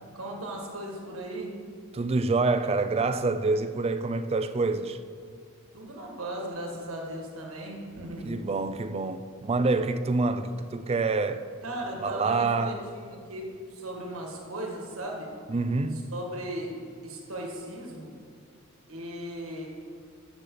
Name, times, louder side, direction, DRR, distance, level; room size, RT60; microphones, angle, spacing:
voice 1, 0.1-1.5 5.7-8.4 11.6-15.3 16.1-16.7 17.0-18.1 18.9-19.7, right 1 dB, 85° right, 1.8 m, -37 dB
voice 2, 1.9-5.0 8.2-11.5 12.0-12.8 15.5-16.0, right 3 dB, 30° right, 0.4 m, -27 dB
13.0 x 6.8 x 3.9 m
head